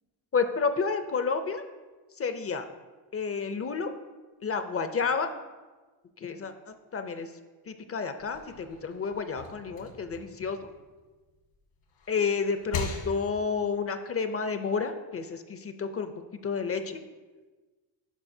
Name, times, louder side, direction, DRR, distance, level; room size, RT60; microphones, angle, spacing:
voice 1, 0.3-1.6 2.1-2.6 3.1-3.9 4.4-5.3 6.2-7.3 7.7-10.6 12.1-16.1 16.4-17.0, left 5 dB, 30° left, 8 dB, 0.4 m, -30 dB
sound 1, 8.2-11.4 11.8-13.6, left 4 dB, 80° left, 1.5 m, -40 dB
11.5 x 4.7 x 2.7 m, 1.3 s
cardioid pair, 105°, 49 cm